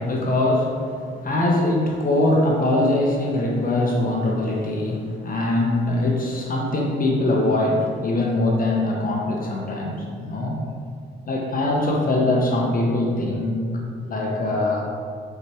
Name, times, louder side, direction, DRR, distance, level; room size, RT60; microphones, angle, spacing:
voice 1, 0.0-10.6 11.3-13.8 14.1-14.8, left 2 dB, 45° left, -1 dB, 1.3 m, -22 dB
8.9 x 5.0 x 4.5 m, 2.3 s
cardioid pair, 90°, 20 cm